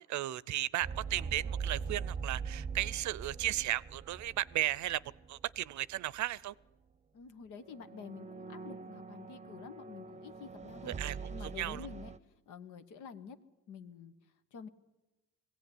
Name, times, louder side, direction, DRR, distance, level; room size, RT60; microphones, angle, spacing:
voice 1, 0.0-5.0 5.3-6.5 10.9-11.2 11.4-11.8, right 14 dB, 70° right, 22 dB, 0.6 m, -35 dB
sound 1, 0.8-5.7 5.9-6.2 7.6-12.2, right 5 dB, 25° right, 0.7 m, -42 dB
voice 2, 7.1-11.0 11.3-12.1 12.5-13.4 13.7-14.7, left 6 dB, 85° left, 9 dB, 1.4 m, -49 dB
20.5 x 16.5 x 9.9 m, 1.1 s
cardioid pair, 90°, 30 cm